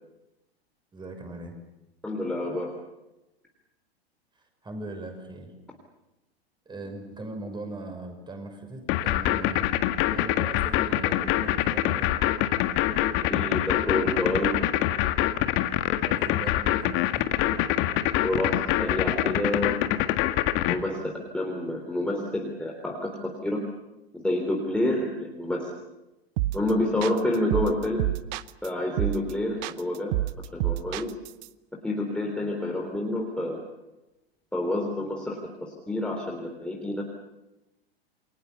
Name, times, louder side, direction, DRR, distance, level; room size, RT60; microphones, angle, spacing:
voice 1, 0.9-1.5 4.6-5.5 6.7-9.7 10.1-12.1 16.0-17.3, right 2 dB, 15° right, 4 dB, 6.2 m, -39 dB
voice 2, 2.0-2.7 13.3-14.6 18.2-19.9 20.7-23.6 24.1-25.7 26.5-28.0 28.6-30.1 30.5-31.2 31.8-33.6 34.5-37.0, left 1 dB, 5° left, 0 dB, 3.4 m, -28 dB
sound 1, 8.9-20.8, left 14 dB, 40° left, 1.8 m, -24 dB
sound 2, 26.4-26.7 27.0-28.7 29.0-29.3 29.6-31.5, right 16 dB, 45° right, 0.9 m, -28 dB
29.0 x 23.0 x 7.0 m, 0.99 s
figure-of-eight pair, 100°, 32 cm